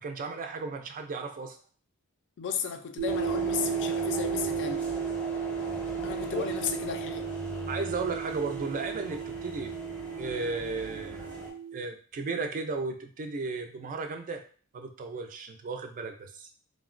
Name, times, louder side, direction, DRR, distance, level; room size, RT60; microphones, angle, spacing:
voice 1, 0.0-1.6 6.3-6.5 7.7-9.7 10.2-11.3 11.7-14.4 14.7-16.5, right 4 dB, 35° right, 0.3 m, -35 dB
voice 2, 2.4-4.9 6.0-7.3, left 7 dB, 55° left, 0.3 m, -34 dB
sound 1, 3.0-11.5, left 1 dB, 5° left, 0.6 m, -40 dB
sound 2, 3.0-11.8, right 8 dB, 85° right, 0.5 m, -34 dB
3.5 x 2.1 x 2.4 m
head